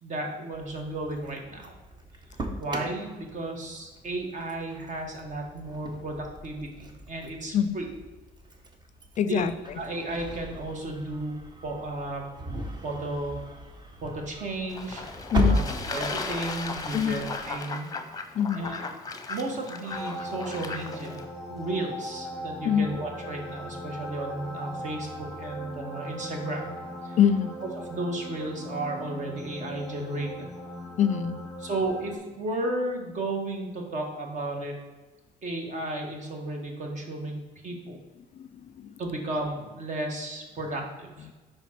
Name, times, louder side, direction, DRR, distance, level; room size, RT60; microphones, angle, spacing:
voice 1, 0.0-1.7 2.6-7.8 9.2-9.5 9.7-12.2 12.8-13.4 14.0-15.1 15.5-15.6 15.9-18.0 18.2-18.8 19.3-26.8 27.0-27.2 27.8-30.6 31.6-34.8 35.4-38.0 39.0-41.3, right 2 dB, 45° right, 2 dB, 1.5 m, -34 dB
Engine starting, 0.5-17.5, equal, 25° right, 0.9 m, -36 dB
voice 2, 9.2-9.5 15.3-15.6 16.9-17.2 18.3-18.6 22.6-23.0 27.2-27.5 31.0-31.4 38.4-38.9, left 8 dB, 45° left, 12 dB, 0.4 m, -24 dB
Fowl / Bird / Water, 14.7-21.2, left 4 dB, 20° left, 0.8 m, -36 dB
sound 1, 19.9-32.2, equal, ahead, 1.1 m, -39 dB
5.2 x 4.1 x 5.8 m, 1.2 s
cardioid pair, 110°, 17 cm